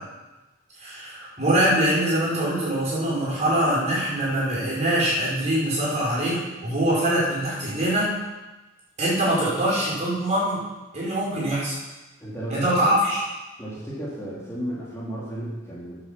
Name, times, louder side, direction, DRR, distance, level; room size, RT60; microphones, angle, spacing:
voice 1, 0.8-8.1 9.0-10.6 10.9-11.7 12.5-13.2, right 1 dB, 35° right, -7 dB, 5.3 m, -23 dB
voice 2, 12.2-13.0 13.6-16.0, right 1 dB, 15° left, -8 dB, 3.2 m, -33 dB
10.0 x 8.7 x 7.4 m, 1.1 s
head